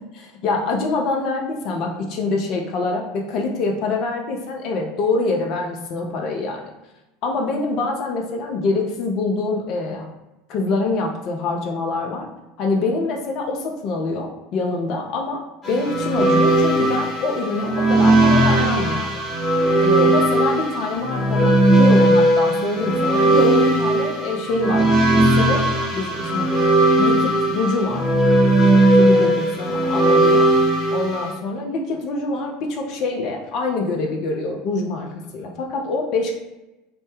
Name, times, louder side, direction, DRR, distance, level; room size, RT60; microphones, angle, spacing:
voice 1, 0.1-6.7 7.2-10.1 10.5-12.3 12.6-19.2 19.8-24.9 25.1-25.6 25.9-26.5 27.0-28.2 29.0-30.5 30.9-36.3, left 3 dB, 45° left, 1 dB, 0.4 m, -25 dB
sound 1, 15.6-31.3, right 1 dB, 15° left, 0.8 m, -17 dB
2.1 x 2.0 x 2.9 m, 1.0 s
figure-of-eight pair, 75°, 0 cm